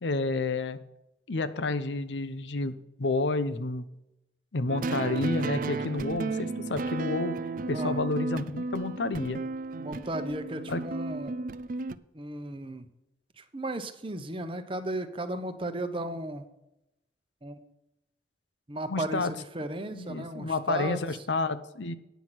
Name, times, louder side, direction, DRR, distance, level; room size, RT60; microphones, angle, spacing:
voice 1, 0.0-0.8 1.3-3.8 4.5-7.3 7.7-9.4 10.7-10.8 18.9-19.3 19.9-21.9, left 3 dB, 80° left, 12 dB, 0.8 m, -30 dB
sound 1, 4.7-12.0, right 3 dB, 50° right, 0.4 m, -33 dB
voice 2, 9.8-11.4 12.1-12.8 13.4-16.5 17.4-17.6 18.7-21.0, right 1 dB, 30° right, 9 dB, 0.8 m, -35 dB
9.3 x 5.8 x 7.8 m, 0.87 s
head